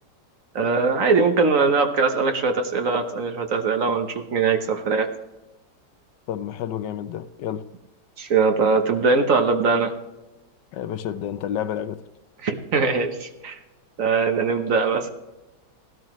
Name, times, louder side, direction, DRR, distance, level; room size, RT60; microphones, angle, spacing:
voice 1, 0.5-5.1 8.2-9.9 12.4-13.6 14.0-15.1, right 4 dB, 55° right, 6 dB, 1.3 m, -21 dB
voice 2, 6.3-7.6 10.7-12.0, left 10 dB, 85° left, 13 dB, 1.3 m, -30 dB
16.0 x 12.5 x 3.1 m, 1.0 s
omnidirectional pair, 1.9 m